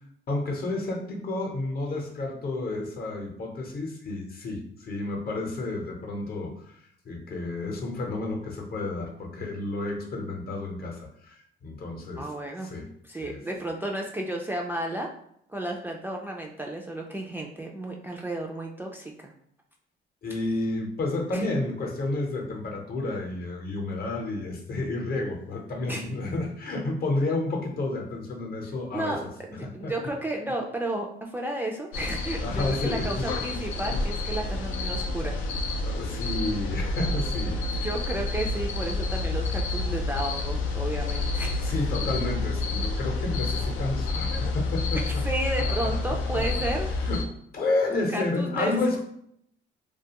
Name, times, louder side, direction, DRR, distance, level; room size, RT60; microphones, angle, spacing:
voice 1, 0.3-6.8 7.0-12.3 12.6-12.9 13.2-13.4 20.2-29.3 29.6-29.9 32.4-33.3 35.8-37.9 41.6-45.2 45.6-46.5 47.0-47.2 47.5-49.0, left 2 dB, 50° left, 0 dB, 0.7 m, -31 dB
voice 2, 12.2-12.7 13.0-15.1 15.5-19.3 21.3-21.4 25.9-26.1 28.9-35.4 37.7-41.7 44.9-46.9 47.9-49.0, right 1 dB, 10° right, 0 dB, 0.3 m, -33 dB
sound 1, 31.9-47.2, left 3 dB, 90° left, 0.4 m, -29 dB
2.4 x 2.3 x 2.8 m, 0.70 s
cardioid pair, 90°, 20 cm